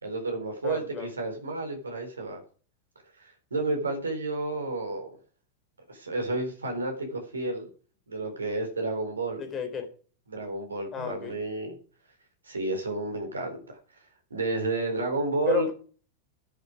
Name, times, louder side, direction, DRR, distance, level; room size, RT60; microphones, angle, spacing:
voice 1, 0.0-2.4 3.5-5.1 5.9-7.7 8.1-9.4 10.3-11.8 12.5-13.8 14.3-15.7, right 3 dB, 75° right, 3.8 m, -31 dB
voice 2, 0.6-1.1 9.4-9.9 10.9-11.4 15.5-15.7, left 7 dB, 25° left, 3.8 m, -31 dB
11.0 x 10.0 x 4.9 m
figure-of-eight pair, 90°, 0 cm